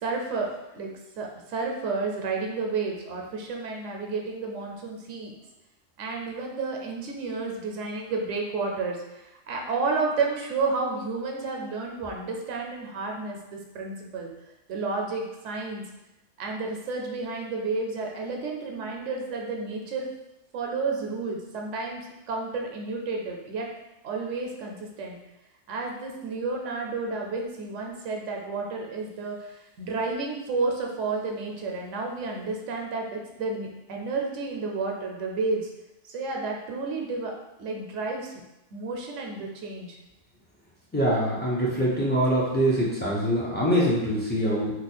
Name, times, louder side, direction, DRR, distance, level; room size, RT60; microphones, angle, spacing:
voice 1, 0.0-5.3 6.0-14.3 14.7-15.8 16.4-20.1 20.5-22.0 22.3-23.7 24.0-25.2 25.7-35.7 36.1-37.3 37.6-38.3 38.7-40.0, right 3 dB, 75° right, 1 dB, 0.9 m, -31 dB
voice 2, 40.9-44.7, equal, 15° left, -7 dB, 0.4 m, -24 dB
2.9 x 2.1 x 4.1 m, 0.96 s
omnidirectional pair, 1.3 m